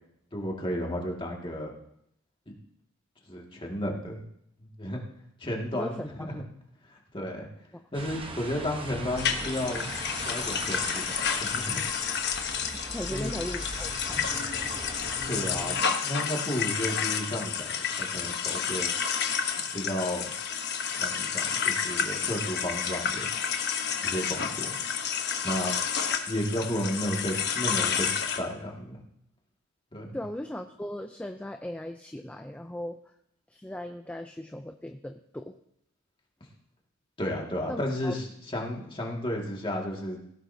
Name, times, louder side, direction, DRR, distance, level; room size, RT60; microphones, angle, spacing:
voice 1, 0.3-1.7 3.3-4.2 4.6-5.0 5.4-6.4 6.9-7.5 7.9-9.8 10.2-11.8 13.1-13.3 15.3-18.9 19.7-20.3 21.0-23.3 24.0-24.8 25.4-25.7 26.3-29.0 29.9-30.2 37.2-40.2, left 1 dB, 25° left, -1 dB, 2.1 m, -33 dB
voice 2, 5.7-6.4 12.7-14.3 30.1-33.0 33.5-35.6 37.7-38.1, left 1 dB, 5° left, 6 dB, 0.4 m, -38 dB
sound 1, 7.9-15.8, right 2 dB, 25° right, 1.0 m, -39 dB
sound 2, 9.2-28.4, left 7 dB, 50° left, 1.1 m, -30 dB
17.0 x 14.5 x 2.8 m, 0.75 s
head